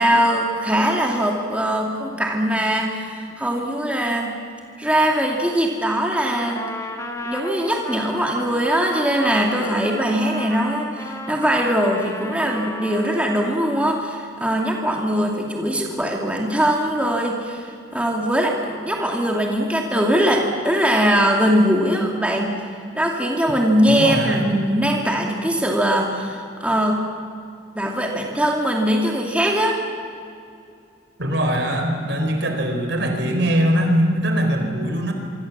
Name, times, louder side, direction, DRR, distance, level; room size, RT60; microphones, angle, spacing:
voice 1, 0.0-4.3 4.8-6.6 7.2-22.6 22.9-27.0 27.7-29.8, equal, 5° right, -1 dB, 2.4 m, -21 dB
Trumpet, 6.1-13.9, left 2 dB, 15° left, 1.9 m, -34 dB
voice 2, 23.9-24.5 31.2-35.1, equal, 65° right, 4 dB, 4.4 m, -21 dB
26.5 x 25.5 x 7.4 m, 2.4 s
head